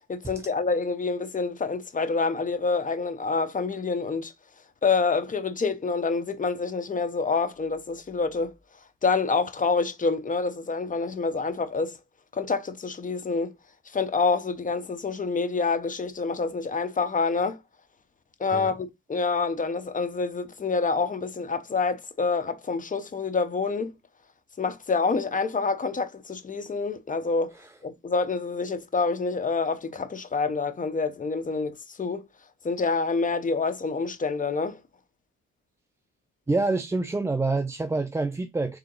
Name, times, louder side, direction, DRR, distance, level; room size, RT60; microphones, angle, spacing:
voice 1, 0.1-4.3 4.8-8.5 9.0-12.0 12.3-13.5 13.9-17.6 18.4-23.9 24.6-27.5 27.8-32.3 32.6-34.8, left 4 dB, 25° left, 0.6 m, -27 dB
voice 2, 36.5-38.8, right 3 dB, 10° right, 0.3 m, -27 dB
3.7 x 2.8 x 3.7 m
cardioid pair, 90°, 30 cm